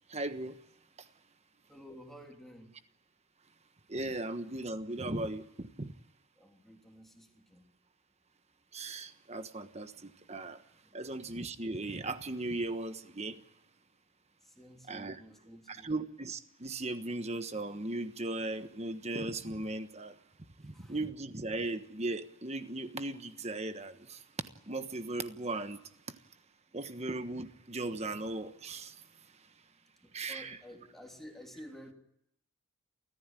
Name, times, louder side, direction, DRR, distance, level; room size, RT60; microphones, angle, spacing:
voice 1, 0.1-0.6 3.9-5.9 8.7-10.6 10.9-13.4 14.9-15.2 15.7-20.1 20.6-25.8 26.7-29.0 30.1-30.6, right 2 dB, 30° right, 10 dB, 1.3 m, -37 dB
voice 2, 1.7-2.7 6.4-7.6 10.9-11.0 14.4-15.9 20.7-20.9 30.0-31.9, equal, ahead, 1 dB, 3.2 m, -52 dB
29.5 x 14.5 x 9.1 m, 0.80 s
head